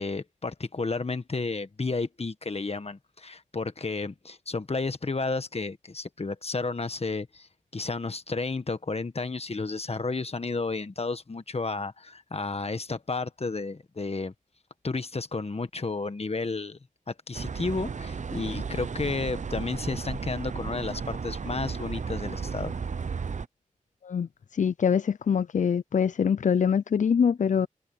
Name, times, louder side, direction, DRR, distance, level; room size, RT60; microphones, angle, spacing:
voice 1, 0.0-7.5 7.7-14.3 14.8-16.8 17.1-22.7, left 3 dB, 45° left, 1.5 m, -32 dB
sound 1, 17.3-23.5, right 5 dB, 60° right, 0.7 m, -34 dB
voice 2, 24.5-27.7, left 7 dB, 60° left, 0.4 m, -24 dB
wide cardioid pair, 60°, 14 cm